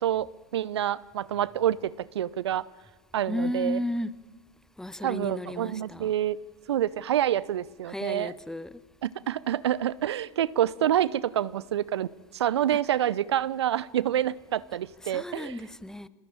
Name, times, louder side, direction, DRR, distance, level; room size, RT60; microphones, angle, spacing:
voice 1, 0.0-2.6 3.1-3.8 5.0-6.4 6.7-8.3 9.0-15.5, right 11 dB, 60° right, 21 dB, 0.8 m, -27 dB
voice 2, 3.3-4.1 4.8-6.1 7.9-8.7 12.7-12.8 15.0-16.1, left 1 dB, 5° left, 17 dB, 0.9 m, -33 dB
26.5 x 19.0 x 9.0 m, 1.2 s
figure-of-eight pair, 105°, 16 cm